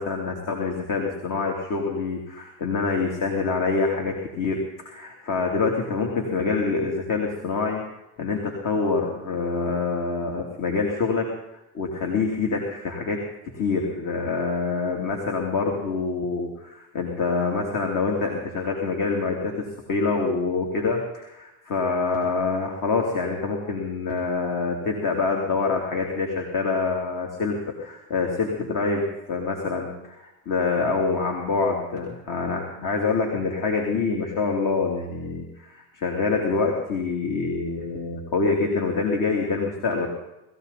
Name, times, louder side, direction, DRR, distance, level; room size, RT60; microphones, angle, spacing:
voice 1, 0.0-7.8 8.2-11.3 11.7-13.2 13.5-40.1, left 4 dB, 50° left, 1 dB, 3.1 m, -26 dB
20.5 x 15.0 x 4.2 m, 0.95 s
supercardioid pair, 105°, 41 cm